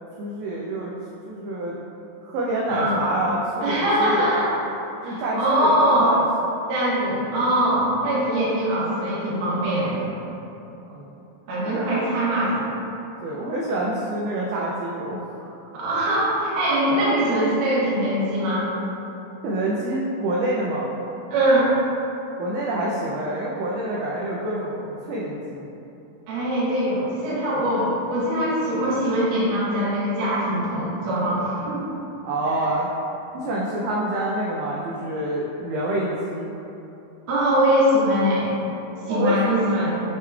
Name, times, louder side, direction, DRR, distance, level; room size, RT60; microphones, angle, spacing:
voice 1, 0.2-0.9 1.3-1.8 2.3-4.4 5.0-6.2 10.9-11.1 11.7-11.9 13.2-15.6 19.4-20.9 22.4-25.7 32.2-32.9 33.3-36.5 39.1-39.5, right 1 dB, 85° right, -5 dB, 1.7 m, -27 dB
voice 2, 2.7-3.0 3.6-4.5 5.0-6.1 6.7-10.1 11.5-12.7 15.7-18.6 21.3-21.7 26.3-31.8 32.6-32.7 37.3-38.5 39.1-39.9, right 1 dB, 65° right, -9 dB, 1.2 m, -22 dB
7.4 x 3.1 x 2.3 m, 2.9 s
omnidirectional pair, 4.0 m